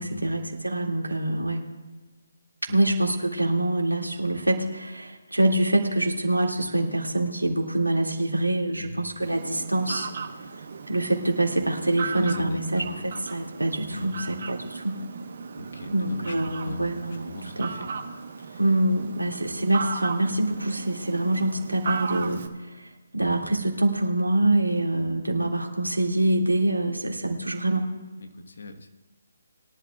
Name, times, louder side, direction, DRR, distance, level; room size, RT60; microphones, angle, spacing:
voice 1, 0.0-1.6 2.6-10.1 10.5-15.0 15.9-17.9 18.6-27.9, right 1 dB, 90° right, 1 dB, 2.2 m, -25 dB
Fowl, 9.2-22.5, right 5 dB, 50° right, 1.1 m, -36 dB
voice 2, 12.1-13.0 13.9-14.3 15.6-17.9 18.4-18.6 28.2-28.9, left 2 dB, 60° left, 6 dB, 1.2 m, -40 dB
21.5 x 11.0 x 2.4 m, 1.3 s
figure-of-eight pair, 145°, 0 cm